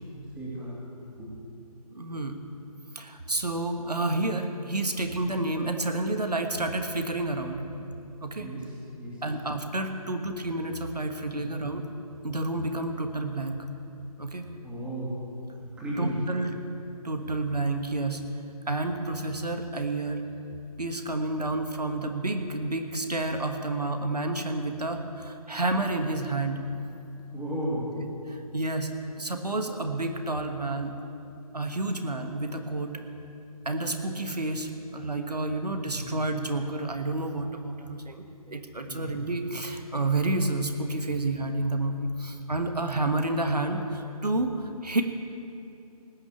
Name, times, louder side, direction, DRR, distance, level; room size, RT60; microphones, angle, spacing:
voice 1, 0.4-0.8 1.2-1.4 8.4-8.7 9.0-9.3 11.3-11.5 14.6-15.2 15.8-16.2 27.3-27.9 35.9-36.2 38.9-39.2, right 1 dB, 5° right, -8 dB, 2.6 m, -34 dB
voice 2, 1.9-2.4 2.9-7.6 8.2-8.5 9.2-11.8 12.2-13.6 14.2-14.5 16.0-16.5 17.0-18.2 18.7-20.2 20.8-26.6 28.0-28.1 28.5-28.9 29.2-30.9 31.5-32.9 33.6-38.2 38.5-44.5 44.8-45.0, right 2 dB, 90° right, 6 dB, 1.4 m, -29 dB
18.5 x 6.4 x 8.5 m, 2.8 s
figure-of-eight pair, 150°, 20 cm